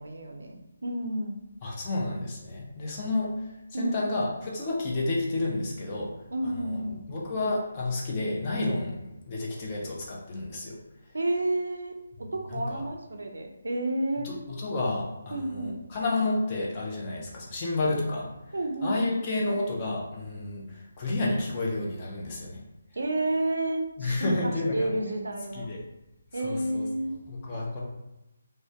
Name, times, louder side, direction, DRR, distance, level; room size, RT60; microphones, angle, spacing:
voice 1, 0.0-1.3 3.7-4.0 6.3-7.1 11.1-14.3 15.3-15.7 18.5-19.1 22.9-25.7 26.3-27.2, right 1 dB, 90° right, 3 dB, 0.4 m, -31 dB
voice 2, 1.6-3.3 3.7-6.1 6.6-6.8 7.1-10.8 12.5-12.8 14.2-18.3 18.8-22.6 24.0-24.9 25.5-25.8 26.4-26.9 27.3-27.8, left 2 dB, 20° left, -4 dB, 0.4 m, -30 dB
2.2 x 2.1 x 2.6 m, 0.95 s
hypercardioid pair, 175°, 0 cm